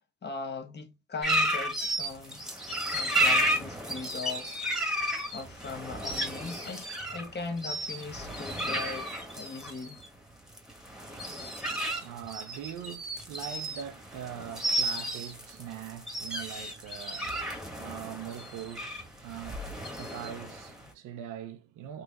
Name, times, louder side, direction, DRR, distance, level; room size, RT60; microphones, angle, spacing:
voice 1, 0.2-2.5 2.9-4.6 4.9-10.0, left 4 dB, 35° left, 0.9 m, -40 dB
sound 1, 1.2-20.9, right 1 dB, ahead, 1.2 m, -33 dB
voice 2, 11.7-19.7 20.0-22.0, right 10 dB, 90° right, 0.7 m, -42 dB
3.8 x 2.9 x 2.5 m
cardioid pair, 90°, 30 cm